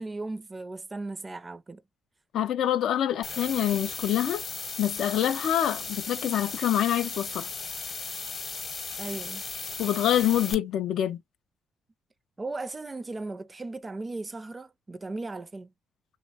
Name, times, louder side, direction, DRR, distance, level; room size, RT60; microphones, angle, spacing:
voice 1, 0.0-1.8 9.0-9.4 12.4-15.7, right 2 dB, 25° right, 0.4 m, -37 dB
voice 2, 2.3-4.4 4.8-7.5 9.8-11.2, left 11 dB, 75° left, 0.3 m, -26 dB
sound 1, 3.2-10.5, left 4 dB, 45° left, 0.8 m, -36 dB
3.0 x 2.1 x 2.7 m
cardioid pair, 90°, 0 cm